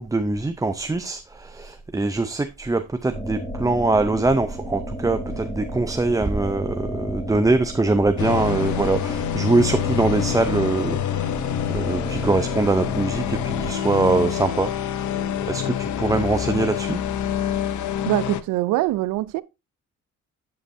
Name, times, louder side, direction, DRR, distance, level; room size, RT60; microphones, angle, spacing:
voice 1, 0.0-11.4 11.7-14.9 15.4-17.0, right 2 dB, 10° right, 0.5 m, -23 dB
sound 1, 3.1-13.7, equal, 10° left, 2.0 m, -33 dB
sound 2, 8.2-18.4, left 10 dB, 70° left, 0.7 m, -27 dB
voice 2, 18.1-19.4, right 17 dB, 90° right, 0.5 m, -23 dB
7.9 x 7.7 x 2.6 m
cardioid pair, 90°, 30 cm